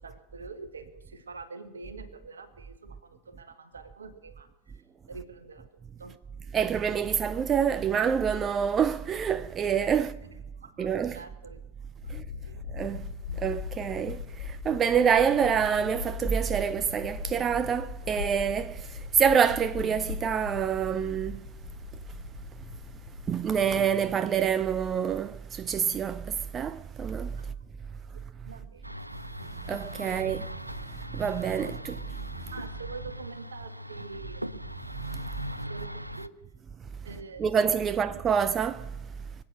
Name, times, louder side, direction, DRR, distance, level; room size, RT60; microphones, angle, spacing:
voice 1, 0.0-4.8 5.1-6.2 10.6-10.9 11.1-11.6 12.0-12.1 12.5-12.7 13.3-13.4 27.4-27.5 28.1-29.0 30.0-30.2 30.9-31.0 31.8-31.9 32.5-34.7 35.1-36.4 37.0-37.6 38.1-38.2, right 4 dB, 70° right, 1.4 m, -46 dB
voice 2, 6.5-10.2 10.8-11.2 12.1-12.2 12.7-13.1 13.4-21.5 23.3-27.5 29.6-30.5 30.9-32.0 35.0-35.3 37.4-39.0, right 7 dB, 25° right, 0.4 m, -27 dB
sound 1, 12.0-23.8, left 6 dB, 75° left, 2.0 m, -40 dB
sound 2, 28.8-36.3, equal, 85° right, 0.4 m, -39 dB
23.5 x 8.6 x 6.6 m
figure-of-eight pair, 90°, 0 cm